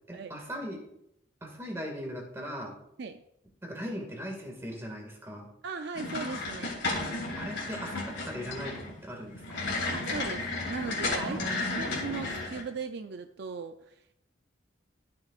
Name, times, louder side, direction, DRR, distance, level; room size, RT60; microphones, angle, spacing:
voice 1, 0.1-0.8 1.4-2.7 3.6-5.5 7.3-9.6 11.2-11.9, equal, 15° right, 1 dB, 2.0 m, -39 dB
voice 2, 5.6-6.8 9.9-11.4 11.8-14.0, right 4 dB, 60° right, 7 dB, 0.4 m, -38 dB
sound 1, 5.9-12.6, left 2 dB, 70° left, 3.1 m, -33 dB
13.5 x 6.8 x 2.4 m, 0.76 s
head